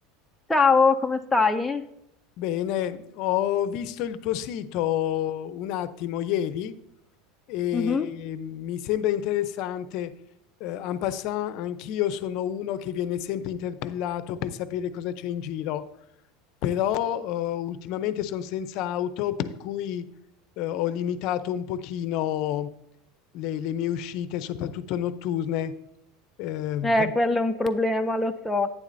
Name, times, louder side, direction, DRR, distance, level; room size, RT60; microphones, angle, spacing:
voice 1, 0.5-1.8 7.7-8.1 26.8-28.7, left 3 dB, 5° left, 5 dB, 0.4 m, -22 dB
voice 2, 2.4-6.7 7.5-10.1 10.6-15.8 16.6-20.1 20.6-22.7 23.3-25.7 26.4-27.1, left 11 dB, 50° left, 13 dB, 0.6 m, -29 dB
10.5 x 9.5 x 2.6 m, 0.81 s
supercardioid pair, 150°, 0 cm